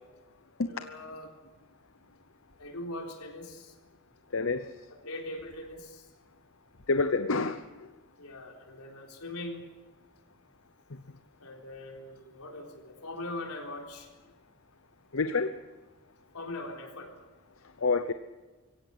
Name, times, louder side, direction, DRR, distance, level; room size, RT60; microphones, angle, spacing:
voice 1, 0.6-1.3 2.6-3.7 4.9-6.1 8.2-9.7 11.4-14.1 16.3-17.1, left 1 dB, 85° left, 2 dB, 4.0 m, -41 dB
voice 2, 4.3-4.7 6.9-7.9 15.1-15.6 17.8-18.1, left 3 dB, 65° left, 10 dB, 0.8 m, -27 dB
23.0 x 17.0 x 8.0 m, 1.2 s
head